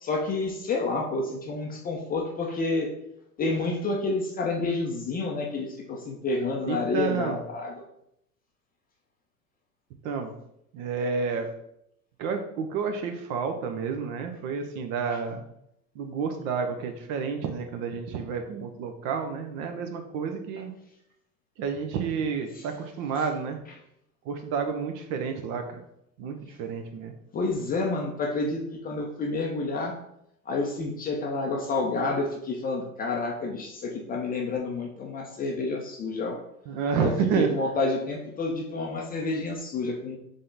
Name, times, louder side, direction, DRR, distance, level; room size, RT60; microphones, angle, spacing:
voice 1, 0.0-2.9 3.4-7.7 27.3-29.9 30.5-36.4 37.0-40.2, left 3 dB, 20° left, 0 dB, 0.5 m, -29 dB
voice 2, 6.6-7.4 10.0-10.3 10.7-11.5 12.2-15.4 15.9-20.7 21.6-23.6 24.2-25.8 26.2-27.1 36.7-37.5, right 6 dB, 40° right, 6 dB, 0.6 m, -30 dB
3.7 x 3.4 x 3.9 m, 0.78 s
hypercardioid pair, 90°, 49 cm